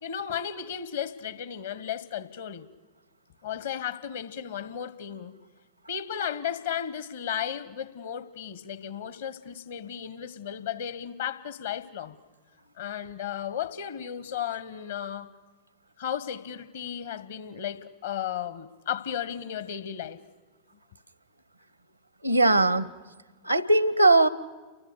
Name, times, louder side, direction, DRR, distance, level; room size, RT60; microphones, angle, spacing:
voice 1, 0.0-2.7 3.4-5.4 5.9-12.2 12.8-15.3 16.0-20.2, left 9 dB, 60° left, 1.5 m, -34 dB
voice 2, 22.2-22.9 23.4-24.3, right 2 dB, 85° right, 1.0 m, -20 dB
29.5 x 24.0 x 6.7 m
figure-of-eight pair, 90°, 0 cm